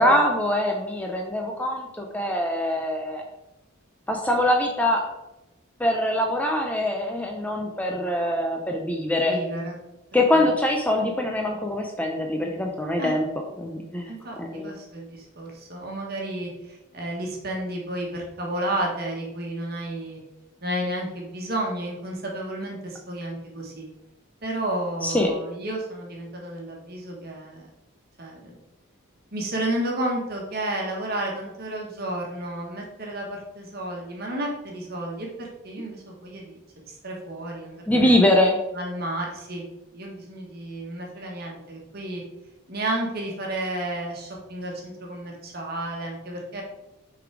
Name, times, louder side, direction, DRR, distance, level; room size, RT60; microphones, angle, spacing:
voice 1, 0.0-3.2 4.1-5.0 5.8-9.3 10.1-13.3 13.6-14.7 25.0-25.3 37.9-38.6, left 1 dB, 5° left, 1 dB, 0.5 m, -23 dB
voice 2, 9.2-9.8 10.3-10.4 13.0-13.1 14.1-20.2 20.6-23.9 24.4-27.6 28.2-28.6 29.3-38.1 38.7-39.7 39.9-42.2 42.7-46.6, right 1 dB, 50° right, -1 dB, 1.5 m, -32 dB
6.3 x 4.0 x 4.8 m, 0.95 s
head